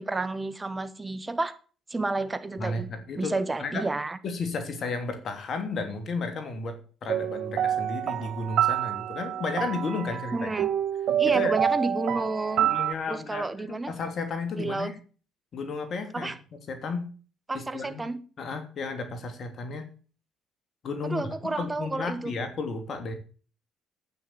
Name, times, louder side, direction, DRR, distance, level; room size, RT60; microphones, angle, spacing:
voice 1, 0.0-1.6 1.9-2.9 3.2-4.2 10.3-10.7 11.2-12.7 13.1-13.9 14.6-14.9 16.1-16.3 17.5-18.2 21.0-22.3, right 2 dB, 20° right, 1.7 m, -30 dB
voice 2, 2.6-3.8 4.2-10.5 11.2-11.5 12.6-15.0 15.5-16.3 16.7-17.1 17.5-18.0 18.4-19.9 20.8-23.2, left 3 dB, 55° left, 2.9 m, -33 dB
sound 1, 7.1-12.9, right 10 dB, 65° right, 0.7 m, -27 dB
11.0 x 9.1 x 7.7 m
hypercardioid pair, 60°, 0 cm